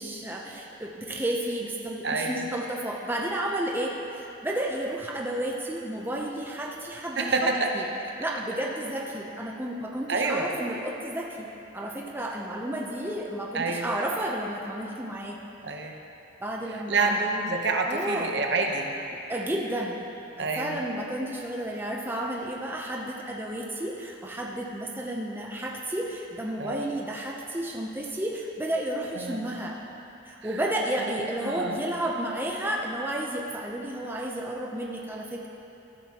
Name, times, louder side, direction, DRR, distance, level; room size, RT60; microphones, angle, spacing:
voice 1, 0.0-7.9 8.2-11.5 11.7-15.4 16.4-17.2 17.8-18.3 19.3-20.0 20.4-29.8 30.3-35.5, right 1 dB, 10° right, -1 dB, 0.6 m, -32 dB
voice 2, 2.0-2.5 7.2-7.7 10.1-10.5 13.5-13.9 15.6-16.0 16.9-19.0 20.4-20.8 26.6-26.9 29.2-29.4 30.5-30.6 31.2-31.8, right 3 dB, 55° right, 2 dB, 0.9 m, -27 dB
14.0 x 12.0 x 2.9 m, 2.9 s
head